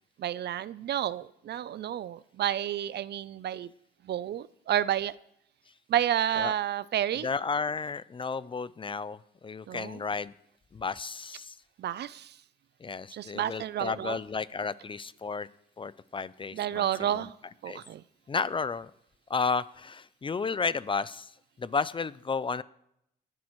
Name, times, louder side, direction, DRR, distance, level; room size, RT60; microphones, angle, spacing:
voice 1, 0.2-3.7 4.1-5.1 5.9-7.3 9.7-10.0 11.8-12.3 13.1-14.2 16.5-17.3 17.6-18.0, right 11 dB, 55° right, 18 dB, 0.5 m, -30 dB
voice 2, 7.2-10.3 10.7-11.5 12.8-15.5 15.8-16.9 17.1-17.2 17.7-17.8 18.3-18.9 19.3-21.3 21.6-22.6, left 5 dB, 25° left, 17 dB, 0.4 m, -32 dB
20.0 x 10.5 x 3.1 m, 0.76 s
cardioid pair, 90°, 20 cm